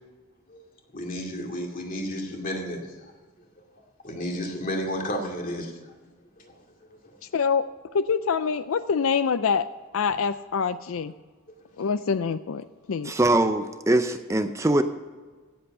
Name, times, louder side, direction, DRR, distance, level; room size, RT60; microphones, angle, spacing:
voice 1, 0.9-2.9 4.0-5.9 6.4-6.5, equal, 40° left, 1 dB, 2.4 m, -32 dB
voice 2, 7.3-7.6 7.9-9.7 9.9-11.1 11.8-13.1, left 6 dB, 80° left, 13 dB, 0.4 m, -25 dB
voice 3, 13.0-14.8, right 2 dB, 15° right, 9 dB, 0.5 m, -22 dB
16.5 x 7.8 x 5.4 m, 1.4 s
head